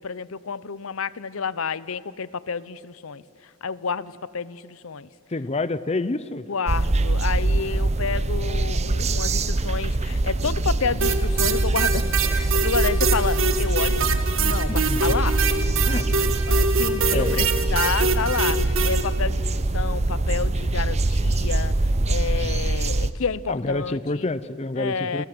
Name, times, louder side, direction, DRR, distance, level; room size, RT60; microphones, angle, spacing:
voice 1, 0.0-5.1 6.5-14.0 14.4-15.4 16.5-24.3 24.8-25.3, left 5 dB, 70° left, 19 dB, 0.7 m, -30 dB
voice 2, 5.3-6.5 14.7-15.2 15.9-16.1 17.1-17.7 23.5-25.3, left 2 dB, 30° left, 16 dB, 0.6 m, -28 dB
sound 1, 6.7-23.1, right 2 dB, 30° right, 0.6 m, -23 dB
sound 2, 11.0-19.0, right 4 dB, 65° right, 1.9 m, -24 dB
28.5 x 26.5 x 7.8 m, 2.5 s
head